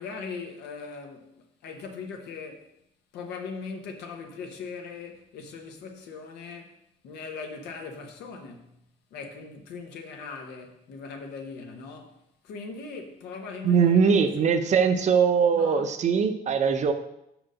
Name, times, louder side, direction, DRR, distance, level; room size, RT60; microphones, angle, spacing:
voice 1, 0.0-2.7 3.1-6.8 7.0-8.8 9.1-14.8 15.5-15.9, left 4 dB, 80° left, 1.2 m, -40 dB
voice 2, 13.6-16.9, right 6 dB, 45° right, 0.8 m, -21 dB
5.2 x 4.9 x 6.4 m
cardioid pair, 110°, 17 cm